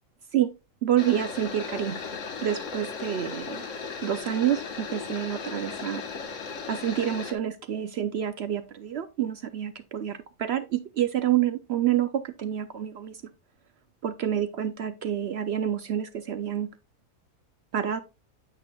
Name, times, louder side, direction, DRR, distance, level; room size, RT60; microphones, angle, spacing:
voice 1, 0.8-2.0 2.4-3.6 4.0-6.0 6.7-13.2 14.0-16.7 17.7-18.0, right 10 dB, 65° right, 0.7 m, -28 dB
sound 1, 1.0-7.3, left 5 dB, 60° left, 1.4 m, -36 dB
9.7 x 8.5 x 2.3 m
omnidirectional pair, 1.5 m